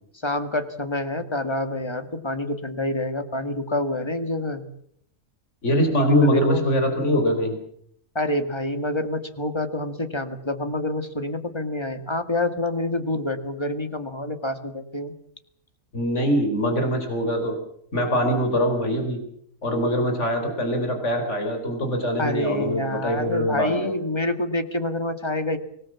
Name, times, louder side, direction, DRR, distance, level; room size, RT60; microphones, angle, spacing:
voice 1, 0.2-4.6 5.9-6.6 8.2-15.1 22.2-25.6, left 1 dB, 20° left, 8 dB, 2.0 m, -27 dB
voice 2, 5.6-7.6 15.9-17.6 17.9-19.2 19.6-24.0, equal, 65° left, 5 dB, 4.5 m, -23 dB
25.0 x 20.0 x 7.4 m, 0.69 s
omnidirectional pair, 1.3 m